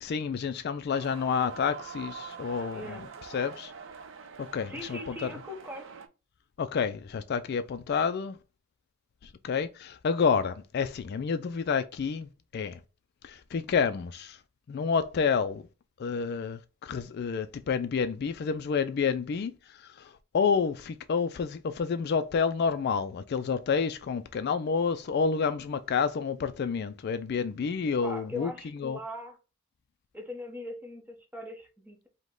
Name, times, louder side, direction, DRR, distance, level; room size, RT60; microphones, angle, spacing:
voice 1, 0.0-3.0 3.3-3.7 4.4-5.3 6.6-8.4 9.2-12.8 13.2-14.4 14.7-15.6 16.0-29.0, left 5 dB, 50° left, 0.3 m, -29 dB
sound 1, 0.9-6.1, right 5 dB, 65° right, 0.6 m, -44 dB
voice 2, 2.7-3.1 4.7-5.9 28.0-29.4 30.1-32.1, left 1 dB, 10° right, 0.9 m, -40 dB
5.0 x 2.2 x 3.7 m
head